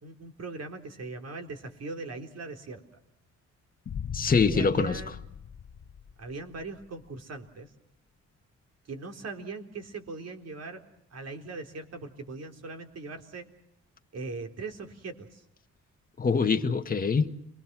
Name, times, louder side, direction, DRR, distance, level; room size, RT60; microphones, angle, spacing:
voice 1, 0.0-2.8 4.4-5.3 6.2-7.7 8.9-10.8 11.1-13.5 14.1-15.4, right 3 dB, 55° right, 4 dB, 4.0 m, -40 dB
Boom, 3.9-6.8, left 7 dB, 45° left, 1.1 m, -40 dB
voice 2, 4.1-5.1 16.2-17.3, left 5 dB, 30° left, 5 dB, 1.7 m, -24 dB
29.5 x 22.0 x 6.2 m, 0.76 s
cardioid pair, 90°, 30 cm